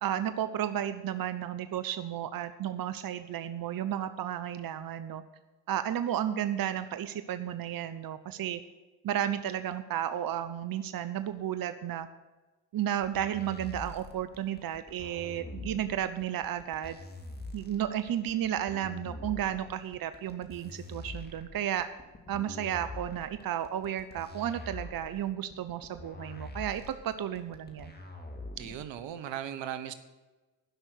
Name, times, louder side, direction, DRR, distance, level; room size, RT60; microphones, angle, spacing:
voice 1, 0.0-5.2 5.7-8.6 9.0-12.1 12.7-17.0 17.5-21.9 22.3-27.9, right 10 dB, 50° right, 11 dB, 0.8 m, -33 dB
sound 1, 13.0-29.0, left 2 dB, 20° left, 2.4 m, -44 dB
voice 2, 28.6-29.9, right 10 dB, 70° right, 11 dB, 1.1 m, -37 dB
11.5 x 6.1 x 8.3 m, 1.2 s
hypercardioid pair, 45°, 46 cm